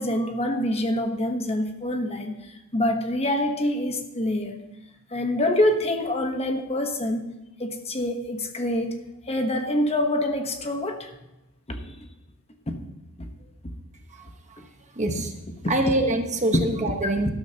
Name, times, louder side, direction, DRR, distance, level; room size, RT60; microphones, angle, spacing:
voice 1, 0.0-4.6 5.1-7.2 7.6-8.9 9.2-11.1 11.7-12.1 12.7-12.8 13.2-13.3 13.6-13.7 15.1-15.2 15.6-15.7, left 1 dB, 30° left, 5 dB, 1.1 m, -26 dB
voice 2, 14.1-14.7 14.9-15.3 15.7-17.3, right 2 dB, 35° right, 4 dB, 1.2 m, -26 dB
12.5 x 12.5 x 2.9 m, 0.95 s
head